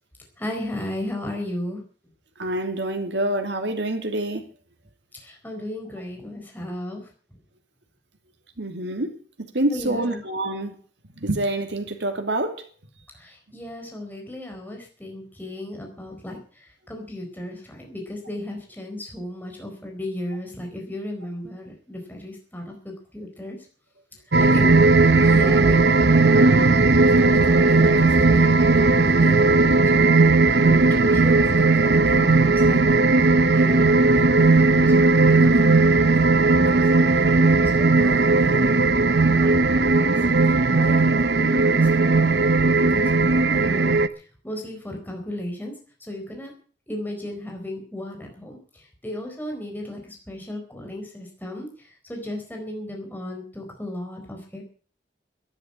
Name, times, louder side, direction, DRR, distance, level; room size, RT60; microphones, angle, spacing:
voice 1, 0.4-1.8 5.2-7.1 9.7-10.2 13.1-23.6 24.4-24.8 25.2-25.8 26.2-26.9 27.2-28.5 28.8-40.2 40.5-43.9 44.4-45.7 46.0-46.5 46.9-54.6, left 1 dB, 10° left, 4.4 m, -35 dB
voice 2, 2.4-4.5 8.6-9.1 9.5-10.7 11.2-12.7, right 1 dB, 85° right, 2.7 m, -26 dB
sound 1, 24.3-44.1, right 3 dB, 65° right, 0.9 m, -17 dB
12.0 x 11.0 x 8.6 m
head